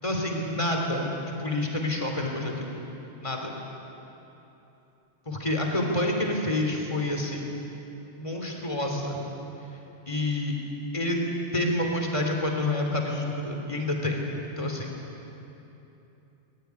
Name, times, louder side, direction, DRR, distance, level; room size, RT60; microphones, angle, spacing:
voice 1, 0.0-2.7 3.2-3.6 5.2-7.5 8.2-9.2 10.1-10.5 10.9-11.2 11.5-14.3 14.6-14.9, left 1 dB, 25° left, 2 dB, 3.4 m, -28 dB
22.5 x 21.5 x 9.6 m, 3.0 s
omnidirectional pair, 1.2 m